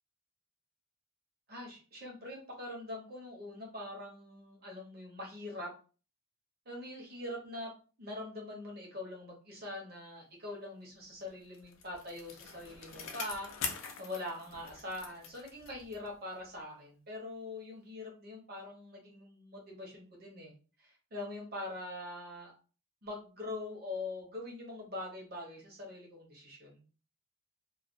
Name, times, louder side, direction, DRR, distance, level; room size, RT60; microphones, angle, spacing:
voice 1, 1.5-5.7 6.7-7.7 8.0-13.5 14.0-20.5 20.8-22.5 23.0-26.8, left 2 dB, 45° right, -1 dB, 0.8 m, -43 dB
Bicycle, 11.3-16.2 16.5-16.6, left 6 dB, 70° left, 0.4 m, -44 dB
2.3 x 2.3 x 2.4 m, 0.37 s
head